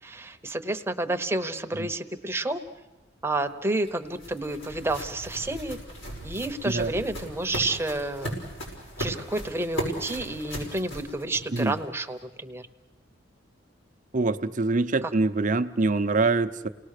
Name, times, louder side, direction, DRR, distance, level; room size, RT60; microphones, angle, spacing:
voice 1, 0.0-2.6 3.2-5.8 6.2-8.4 9.0-12.7 15.0-15.1, right 2 dB, 15° right, 6 dB, 0.9 m, -30 dB
sound 1, 3.4-11.9, right 1 dB, 80° left, 5.9 m, -37 dB
voice 2, 14.1-16.7, right 3 dB, 40° right, 9 dB, 0.7 m, -24 dB
29.5 x 19.0 x 6.7 m, 1.1 s
head